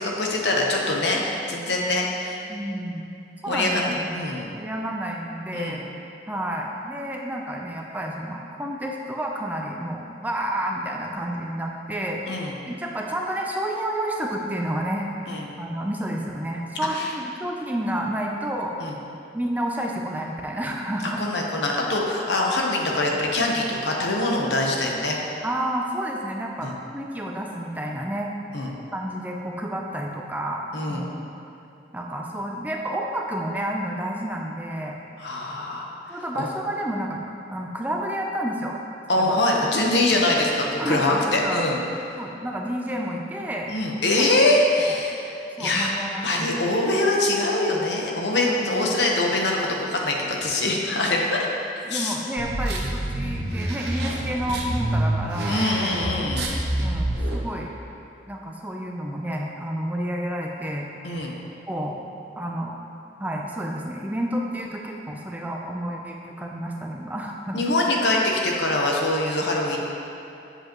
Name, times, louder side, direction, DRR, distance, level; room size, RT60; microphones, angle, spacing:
voice 1, 0.0-2.4 3.5-4.5 5.5-5.8 12.3-12.5 15.3-15.5 16.9-17.1 18.8-18.9 21.2-25.2 26.6-26.7 28.5-28.7 30.7-31.0 35.2-36.5 39.1-41.8 43.7-45.9 46.2-51.5 51.9-52.2 55.5-56.5 61.0-61.3 67.5-69.8, left 2 dB, 75° left, -1 dB, 1.0 m, -24 dB
voice 2, 2.5-3.1 3.4-4.3 4.5-5.8 6.3-12.2 12.7-15.1 15.6-18.8 19.3-21.2 22.4-22.5 25.4-28.3 28.9-31.4 31.9-35.0 36.1-37.2 37.5-38.8 39.1-39.4 40.8-41.6 42.2-43.7 45.6-46.5 48.4-48.9 51.8-55.6 56.8-57.7 58.3-60.9 61.7-62.0 62.4-62.8 63.2-67.6 69.4-69.5, right 1 dB, 10° right, 0 dB, 0.4 m, -30 dB
sound 1, 52.4-57.4, right 1 dB, 65° right, 0.9 m, -27 dB
7.8 x 7.7 x 3.0 m, 2.7 s
head